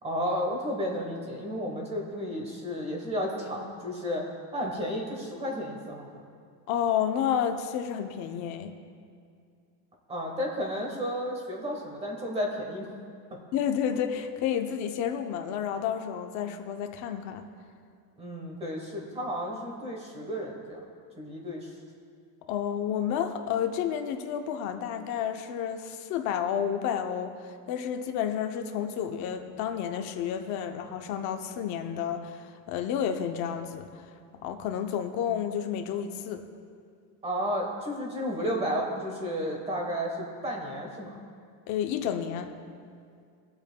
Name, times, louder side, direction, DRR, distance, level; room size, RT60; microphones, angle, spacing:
voice 1, 0.0-4.2 4.5-6.2 10.1-12.9 18.2-20.8 21.2-21.7 37.2-41.2, equal, 15° right, 0 dB, 1.1 m, -32 dB
voice 2, 6.7-8.7 13.5-17.4 22.5-34.0 34.4-36.4 41.7-42.5, left 8 dB, 40° left, 5 dB, 0.6 m, -30 dB
21.0 x 7.8 x 2.2 m, 2.2 s
cardioid pair, 175°, 45 cm